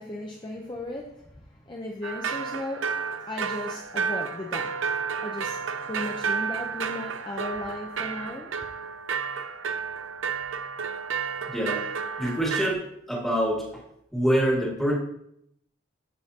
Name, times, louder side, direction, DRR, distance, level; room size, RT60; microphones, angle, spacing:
voice 1, 0.0-3.0 3.3-4.9 5.2-5.6 5.9-8.5, left 1 dB, 25° left, 0 dB, 0.7 m, -36 dB
sound 1, 2.0-12.7, right 6 dB, 80° right, 0.6 m, -31 dB
voice 2, 11.5-11.9 12.2-12.8 13.1-13.6 14.1-14.9, equal, ahead, -4 dB, 2.1 m, -25 dB
14.0 x 5.6 x 2.9 m, 0.76 s
head